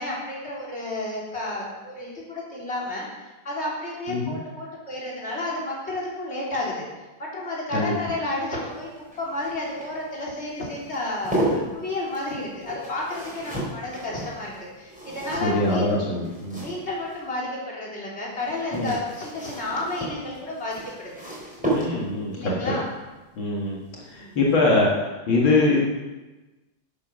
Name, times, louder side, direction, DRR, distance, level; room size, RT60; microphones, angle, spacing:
voice 1, 0.0-6.8 7.2-8.9 9.2-16.0 16.6-21.1 22.3-22.8 24.1-24.3, left 2 dB, 30° left, -5 dB, 3.6 m, -31 dB
voice 2, 4.1-4.4 7.7-7.9 15.4-16.6 18.7-18.9 21.7-22.8 23.3-25.8, left 2 dB, 75° left, -3 dB, 2.6 m, -23 dB
sound 1, 8.4-17.3 18.4-22.3 23.9-24.2 24.5-24.6, right 1 dB, 5° right, 4.2 m, -33 dB
12.0 x 8.3 x 6.3 m, 1.1 s
omnidirectional pair, 2.2 m